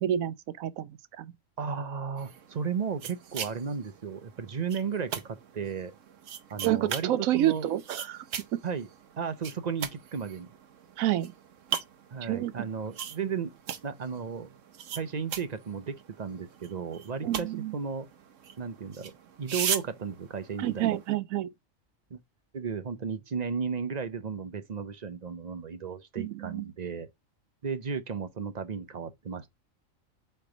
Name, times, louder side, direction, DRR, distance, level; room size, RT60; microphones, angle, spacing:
voice 1, 0.0-1.3 6.6-8.2 8.5-8.6 11.0-11.3 12.2-12.5 17.2-17.7 20.6-21.5 26.2-26.6, right 12 dB, 90° right, 1.0 m, -29 dB
voice 2, 1.6-5.9 6.5-7.1 7.3-7.7 8.6-8.9 9.2-10.5 12.1-13.5 13.8-14.5 14.9-18.1 18.6-19.1 19.4-21.0 22.1-22.2 22.5-27.1 27.6-29.5, right 6 dB, 40° right, 0.7 m, -34 dB
sound 1, 2.2-21.1, right 8 dB, 70° right, 1.2 m, -40 dB
8.1 x 3.4 x 3.8 m
omnidirectional pair, 1.4 m